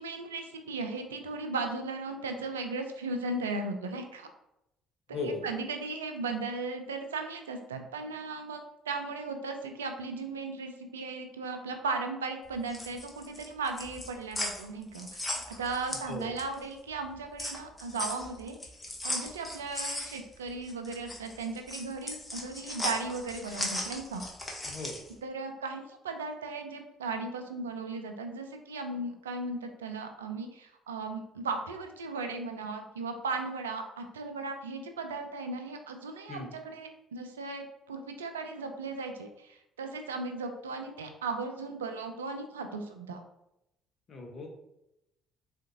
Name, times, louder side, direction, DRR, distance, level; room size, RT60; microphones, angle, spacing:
voice 1, 0.0-4.3 5.1-15.2 15.6-18.6 19.0-24.3 25.2-43.2, right 3 dB, 90° right, 5 dB, 0.3 m, -36 dB
voice 2, 5.1-5.4 16.1-16.3 24.6-25.0 36.3-36.5 44.1-44.5, left 3 dB, 45° left, 2 dB, 0.8 m, -37 dB
sound 1, 12.5-16.6 17.0-25.1, left 1 dB, 20° left, 0.8 m, -37 dB
3.8 x 2.5 x 2.5 m, 0.84 s
hypercardioid pair, 55°, 0 cm